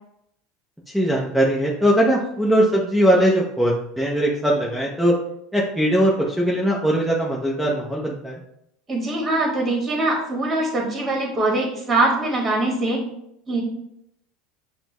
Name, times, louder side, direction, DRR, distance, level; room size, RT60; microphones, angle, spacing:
voice 1, 0.9-5.1 5.5-8.4, equal, ahead, -3 dB, 0.7 m, -20 dB
voice 2, 8.9-13.0 13.5-13.6, right 2 dB, 25° right, 1 dB, 1.3 m, -22 dB
6.0 x 2.1 x 3.0 m, 0.76 s
supercardioid pair, 105°, 0 cm